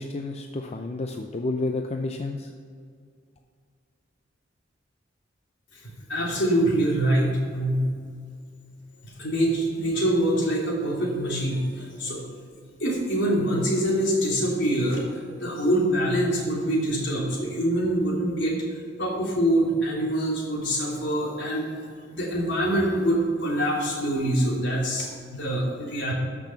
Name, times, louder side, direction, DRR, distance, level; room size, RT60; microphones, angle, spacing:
voice 1, 0.0-2.5, left 2 dB, 35° left, 4 dB, 0.5 m, -30 dB
voice 2, 6.1-7.9 9.2-12.2 12.8-21.7 22.1-26.1, right 1 dB, 65° left, -3 dB, 3.1 m, -25 dB
13.5 x 6.1 x 5.9 m, 2.2 s
head